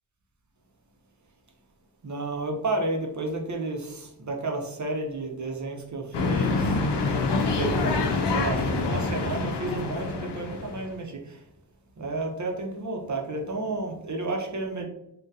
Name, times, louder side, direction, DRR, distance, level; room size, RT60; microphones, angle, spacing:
voice 1, 2.0-6.8 7.5-11.4 12.0-14.9, right 2 dB, 45° right, 1 dB, 0.7 m, -31 dB
sound 1, 6.1-11.0, left 3 dB, 80° left, 0.6 m, -26 dB
3.6 x 2.3 x 2.7 m, 0.80 s
wide cardioid pair, 70°, 40 cm